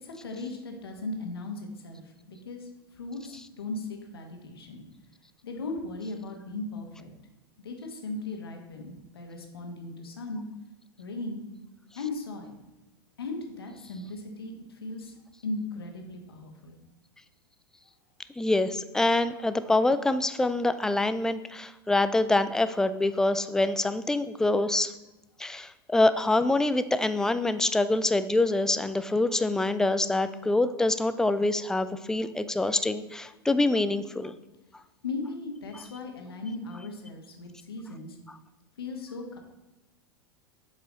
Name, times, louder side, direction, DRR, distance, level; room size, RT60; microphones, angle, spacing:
voice 1, 0.0-4.8 5.4-7.1 7.6-10.4 11.0-11.4 12.0-12.6 13.2-15.1 15.4-16.8 35.0-38.2 38.8-39.4, left 2 dB, 75° left, 3 dB, 1.3 m, -37 dB
voice 2, 18.4-24.9 25.4-34.4, left 2 dB, 5° left, 12 dB, 0.3 m, -25 dB
7.4 x 4.8 x 3.9 m, 1.0 s
figure-of-eight pair, 90°, 13 cm